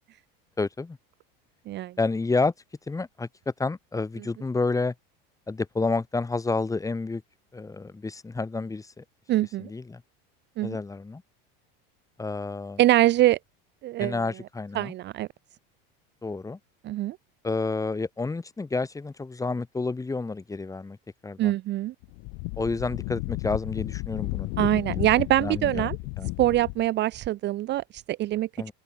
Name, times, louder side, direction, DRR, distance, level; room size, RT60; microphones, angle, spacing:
voice 1, 0.6-1.0 2.0-2.5 2.9-4.9 5.5-7.2 7.5-9.0 9.6-10.0 10.6-11.2 12.2-12.8 14.0-14.9 16.2-16.6 17.4-21.0 21.2-21.5 22.6-25.1 25.4-25.9 26.2-26.3 28.6-28.7, left 3 dB, 10° left, 5.1 m, -30 dB
voice 2, 9.3-9.7 10.6-10.8 12.8-13.4 13.8-14.2 14.7-15.3 16.8-17.2 21.4-21.9 24.6-26.0 26.4-28.5, right 15 dB, 35° right, 0.9 m, -24 dB
Wind, 22.0-26.9, left 39 dB, 60° left, 1.9 m, -33 dB
open air
supercardioid pair, 140°, 30 cm